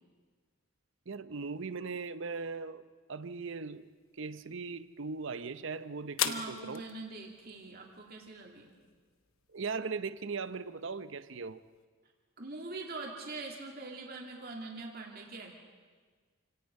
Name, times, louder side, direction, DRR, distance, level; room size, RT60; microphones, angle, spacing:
voice 1, 1.1-2.8 3.1-3.9 4.2-6.8 9.5-11.6, right 4 dB, 60° right, 14 dB, 0.7 m, -39 dB
sound 1, 3.7-11.9, left 10 dB, 70° left, 1.0 m, -44 dB
voice 2, 6.2-8.7 12.4-15.7, right 3 dB, 45° right, 1 dB, 2.7 m, -43 dB
28.0 x 18.0 x 5.4 m, 1.5 s
head